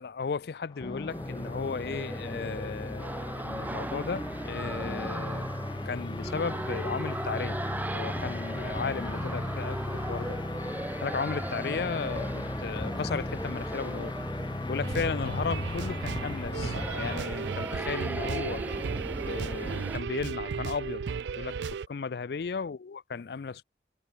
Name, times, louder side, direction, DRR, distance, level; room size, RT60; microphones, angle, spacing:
voice 1, 0.0-5.5 5.9-7.6 7.9-10.4 11.0-14.2 14.7-18.7 19.2-21.0 21.3-23.6, left 5 dB, 60° left, 0.4 m, -35 dB
sound 1, 0.7-17.2, left 2 dB, 25° left, 0.7 m, -36 dB
sound 2, 1.1-20.0, right 1 dB, 10° right, 0.4 m, -38 dB
sound 3, 14.8-21.9, right 6 dB, 75° right, 0.4 m, -35 dB
head